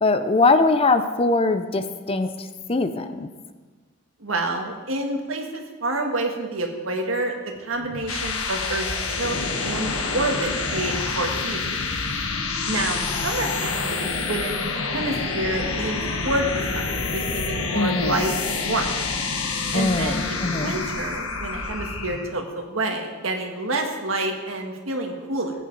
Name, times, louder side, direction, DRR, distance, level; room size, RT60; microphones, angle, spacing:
voice 1, 0.0-3.3 13.1-13.7 17.7-18.2 19.7-20.7, left 3 dB, 25° left, 9 dB, 0.5 m, -22 dB
voice 2, 4.2-7.3 7.6-8.9 9.2-11.6 12.6-18.9 19.7-25.5, right 2 dB, 70° right, 3 dB, 1.6 m, -28 dB
sound 1, 7.8-22.3, left 4 dB, 85° left, 1.2 m, -27 dB
15.0 x 9.3 x 4.0 m, 1.4 s
head